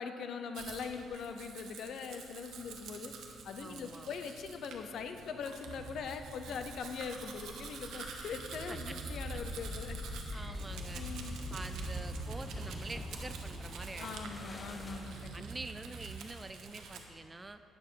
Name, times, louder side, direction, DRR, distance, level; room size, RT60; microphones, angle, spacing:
voice 1, 0.0-3.1 3.4-10.0 10.3-10.6 10.9-11.4 14.0-15.4, left 6 dB, 65° left, 8 dB, 0.8 m, -42 dB
Domestic sounds home sounds, 0.5-17.0, right 5 dB, 75° right, 1.2 m, -49 dB
voice 2, 3.6-4.1 6.5-6.6 8.7-9.0 9.3-9.4 10.3-11.0 11.5-14.5 15.3-17.6, right 2 dB, 20° right, 11 dB, 0.4 m, -46 dB
sound 1, 5.6-16.2, right 5 dB, 55° right, 0.7 m, -48 dB
sound 2, 8.5-15.4, left 1 dB, 20° left, 1.2 m, -43 dB
12.0 x 9.4 x 4.6 m, 2.8 s
cardioid pair, 120°, 0 cm